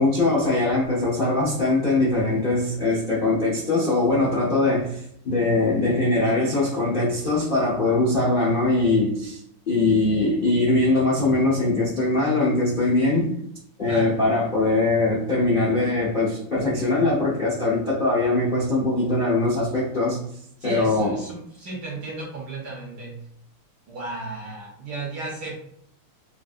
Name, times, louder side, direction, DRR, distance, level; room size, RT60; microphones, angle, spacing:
voice 1, 0.0-9.4 9.7-13.3 13.8-20.2 20.6-21.2, left 2 dB, 65° left, -7 dB, 0.5 m, -21 dB
voice 2, 13.9-14.2 20.6-23.2 23.9-25.6, right 2 dB, 65° right, -3 dB, 1.1 m, -34 dB
3.9 x 2.5 x 2.4 m, 0.73 s
omnidirectional pair, 2.4 m